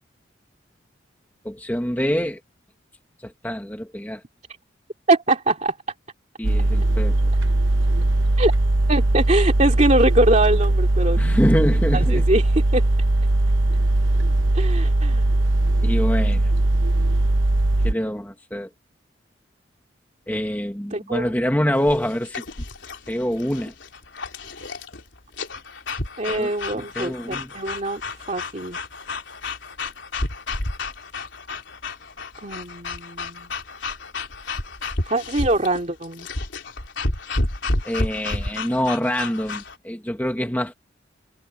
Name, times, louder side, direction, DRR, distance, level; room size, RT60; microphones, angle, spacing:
voice 1, 1.4-2.4 3.2-4.2 6.4-7.3 11.2-12.3 15.8-16.5 17.8-18.7 20.3-22.4 23.1-23.7 26.2-27.5 37.8-40.7, equal, 10° left, 1.9 m, -25 dB
voice 2, 5.1-5.7 8.4-8.5 8.9-11.2 11.9-12.8 14.5-15.2 20.9-21.3 26.2-28.0 28.3-28.8 32.4-33.5 35.1-36.3, right 2 dB, 40° right, 2.8 m, -22 dB
sound 1, 6.4-17.9, right 2 dB, 90° right, 1.0 m, -19 dB
sound 2, 21.8-39.8, left 2 dB, 75° left, 3.6 m, -31 dB
head